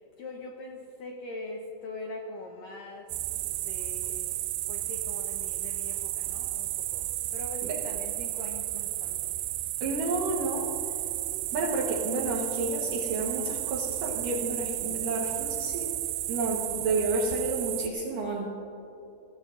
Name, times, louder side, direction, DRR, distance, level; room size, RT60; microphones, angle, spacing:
voice 1, 0.2-4.4 4.7-9.4, left 2 dB, 80° left, 1 dB, 1.9 m, -42 dB
sound 1, 3.1-17.9, right 16 dB, 85° right, 2.5 m, -33 dB
voice 2, 9.8-10.7 11.5-15.9 16.3-18.5, right 2 dB, 70° right, -2 dB, 2.1 m, -30 dB
23.5 x 16.0 x 2.6 m, 2.9 s
omnidirectional pair, 5.5 m